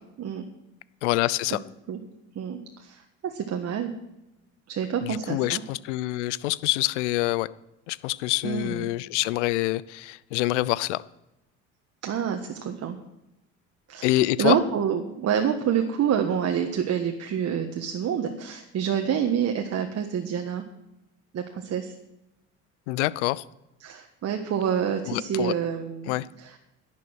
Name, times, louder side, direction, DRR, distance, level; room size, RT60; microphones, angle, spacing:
voice 1, 1.0-1.6 5.0-7.5 7.9-11.0 14.0-14.6 22.9-23.4 25.1-25.5 26.1-26.3, left 17 dB, 90° left, 20 dB, 0.6 m, -26 dB
voice 2, 2.3-3.9 4.7-5.6 8.4-8.9 12.0-13.0 13.9-14.1 14.4-20.6 21.3-21.9 23.8-26.1 26.4-26.5, right 8 dB, 45° right, 4 dB, 1.5 m, -27 dB
10.5 x 10.5 x 6.2 m, 0.93 s
supercardioid pair, 80°, 34 cm